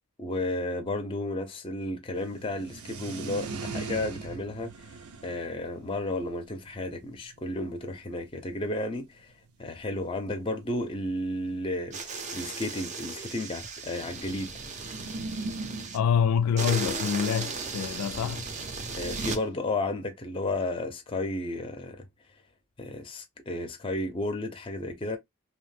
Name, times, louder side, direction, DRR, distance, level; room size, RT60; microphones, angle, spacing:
voice 1, 0.2-4.7 5.2-9.3 9.6-14.6 19.0-22.1 22.8-25.2, left 2 dB, 25° left, 0.5 m, -33 dB
sound 1, 2.1-8.3 8.9-9.0 9.2-9.3 9.5-9.7 10.6-10.7 10.9-11.0 11.8-13.3 14.8-17.4 18.8-19.3, right 3 dB, 85° right, 0.6 m, -40 dB
sound 2, 11.9-16.0 16.6-19.4, right 4 dB, 30° right, 0.4 m, -36 dB
voice 2, 15.9-18.4, left 7 dB, 85° left, 0.3 m, -26 dB
2.9 x 2.0 x 3.1 m
head